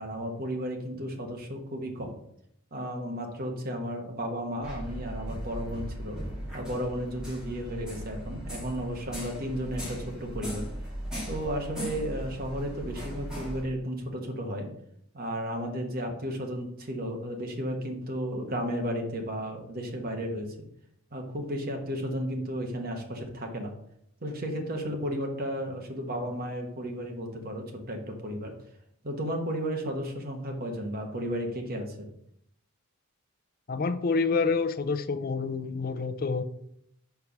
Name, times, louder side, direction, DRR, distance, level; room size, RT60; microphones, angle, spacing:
voice 1, 0.0-2.1 2.7-6.2 6.5-10.7 11.3-14.7 15.1-20.5 21.1-23.7 24.2-28.5 29.0-32.1, equal, 45° right, 2 dB, 1.2 m, -33 dB
sound 1, 4.6-13.6, equal, 5° right, 2.2 m, -38 dB
voice 2, 33.7-36.4, left 4 dB, 40° left, 10 dB, 0.5 m, -28 dB
5.3 x 4.6 x 5.9 m, 0.73 s
head